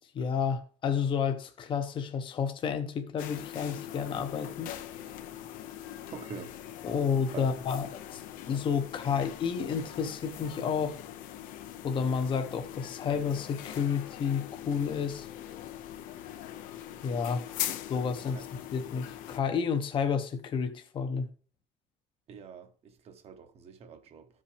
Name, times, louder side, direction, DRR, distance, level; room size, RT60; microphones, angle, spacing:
voice 1, 0.0-4.7 6.8-8.2 8.5-11.0 11.8-15.3 17.0-17.5 17.9-18.5 18.7-21.3, left 6 dB, 35° left, 0.8 m, -31 dB
sound 1, 3.2-19.4, left 12 dB, 80° left, 0.8 m, -42 dB
voice 2, 6.1-6.5 7.3-7.5 18.3-18.4 22.3-24.3, right 6 dB, 45° right, 1.1 m, -45 dB
12.5 x 5.3 x 3.3 m
cardioid pair, 135°, 14 cm